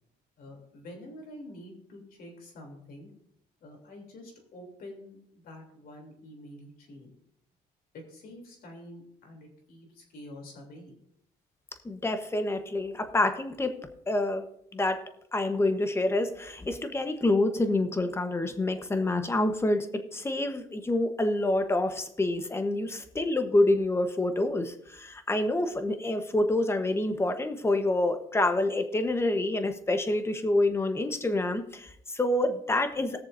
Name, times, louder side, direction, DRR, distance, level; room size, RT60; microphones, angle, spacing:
voice 1, 0.4-3.1 3.6-7.2 7.9-11.0, left 1 dB, 60° left, 2 dB, 3.2 m, -47 dB
voice 2, 11.8-13.8 14.1-15.0 15.3-33.2, left 2 dB, 15° left, 8 dB, 1.1 m, -27 dB
20.5 x 6.8 x 2.7 m, 0.72 s
cardioid pair, 110°, 17 cm